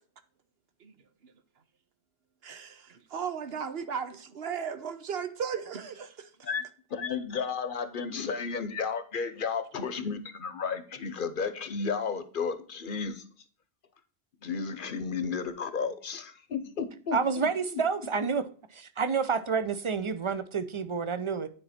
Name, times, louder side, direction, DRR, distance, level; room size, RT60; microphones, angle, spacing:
voice 1, 2.4-6.5, right 7 dB, 70° right, 1.1 m, -36 dB
voice 2, 6.9-13.2 14.4-17.2 17.7-17.8, left 5 dB, 55° left, 0.9 m, -33 dB
voice 3, 17.1-18.4 18.7-21.5, right 5 dB, 40° right, 0.5 m, -29 dB
9.6 x 4.2 x 4.2 m
omnidirectional pair, 1.1 m